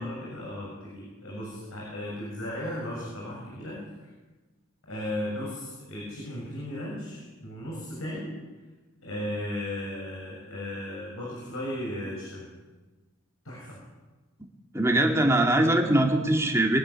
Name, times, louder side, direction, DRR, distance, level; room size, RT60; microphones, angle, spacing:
voice 1, 0.0-4.1 4.9-8.3 9.0-12.5 13.4-13.8, left 1 dB, 85° left, -3 dB, 6.7 m, -36 dB
voice 2, 14.7-16.8, right 1 dB, 15° right, 2 dB, 2.3 m, -22 dB
23.0 x 12.0 x 9.9 m, 1.2 s
head